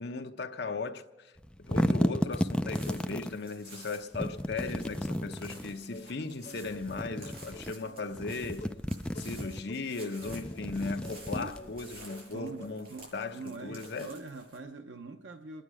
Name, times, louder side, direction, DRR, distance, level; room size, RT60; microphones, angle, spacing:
voice 1, 0.0-1.3 1.6-8.7 9.2-12.9 13.1-13.3 13.6-14.1, left 3 dB, 65° left, 0.9 m, -37 dB
sound 1, 1.4-3.3 4.1-5.8 6.7-7.7 8.1-9.6 10.2-12.0, equal, 5° left, 0.4 m, -33 dB
sound 2, 2.3-14.6, right 2 dB, 60° right, 7.1 m, -53 dB
sound 3, 4.3-12.8, left 2 dB, 40° left, 1.2 m, -51 dB
voice 2, 12.3-15.6, right 3 dB, 85° right, 0.7 m, -44 dB
27.5 x 10.5 x 4.9 m
head